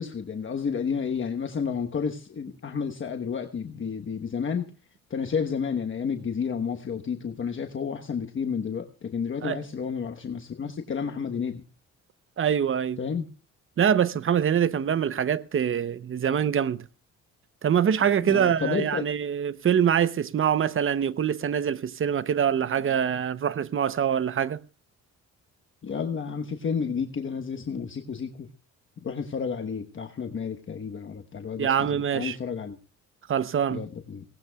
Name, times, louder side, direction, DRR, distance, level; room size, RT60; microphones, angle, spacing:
voice 1, 0.0-4.7 5.1-11.6 13.0-13.2 18.2-19.0 25.8-28.5 29.0-32.8 33.7-34.2, left 6 dB, 40° left, 1.2 m, -31 dB
voice 2, 12.4-13.0 13.8-16.9 17.6-24.6 31.6-32.4 33.3-33.9, right 8 dB, 45° right, 0.8 m, -24 dB
22.5 x 18.0 x 2.3 m
cardioid pair, 90°, 30 cm